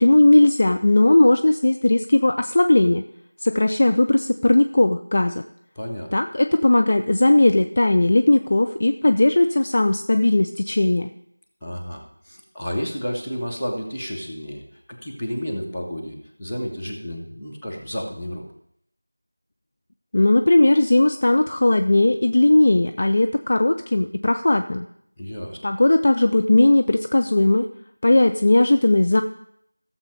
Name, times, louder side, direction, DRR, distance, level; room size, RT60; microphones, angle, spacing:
voice 1, 0.0-3.0 3.4-5.4 6.1-11.1 20.1-24.9 25.6-27.7 28.0-29.2, left 2 dB, 30° left, 6 dB, 0.4 m, -17 dB
voice 2, 5.7-6.1 11.6-14.6 14.9-18.4 25.2-25.6, equal, ahead, -15 dB, 1.5 m, -31 dB
15.5 x 7.3 x 5.2 m, 0.71 s
figure-of-eight pair, 175°, 0 cm